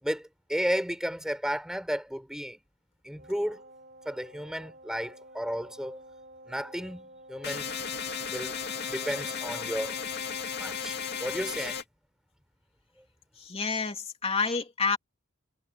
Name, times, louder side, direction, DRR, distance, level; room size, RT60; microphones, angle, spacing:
voice 1, 0.0-2.6 3.0-3.6 4.1-6.0 6.5-7.7 8.3-8.6 8.9-10.0 10.6-11.8, equal, 5° right, 5.6 m, -33 dB
Wind instrument woodwind instrument, 3.1-11.3, right 1 dB, 45° right, 4.3 m, -51 dB
sound 1, 7.4-11.8, left 6 dB, 50° left, 2.4 m, -35 dB
voice 2, 13.5-15.0, left 4 dB, 30° left, 3.0 m, -28 dB
head